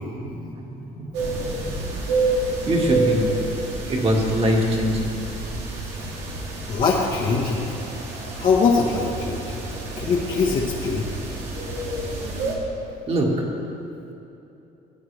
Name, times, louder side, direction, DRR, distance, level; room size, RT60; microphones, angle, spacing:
voice 1, 0.2-1.8 2.6-3.3 3.9-5.0 13.1-13.4, equal, 35° right, -1 dB, 2.0 m, -23 dB
sound 1, 1.1-12.6, right 2 dB, 85° right, 2.1 m, -29 dB
voice 2, 6.7-7.7 8.4-9.7 10.0-11.1, left 4 dB, 55° left, -5 dB, 1.3 m, -22 dB
17.0 x 8.8 x 3.4 m, 2.9 s
cardioid pair, 110°, 17 cm